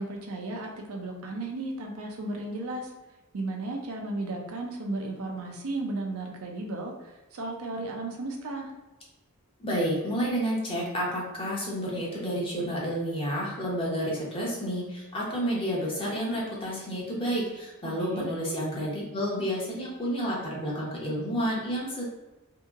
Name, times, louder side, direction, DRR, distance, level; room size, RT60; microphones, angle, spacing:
voice 1, 0.0-2.9 3.3-6.9 7.3-8.7 17.8-18.3, right 2 dB, 70° right, 1 dB, 0.5 m, -34 dB
voice 2, 9.6-22.0, equal, 25° left, -4 dB, 0.8 m, -30 dB
2.8 x 2.7 x 2.4 m, 1.1 s
head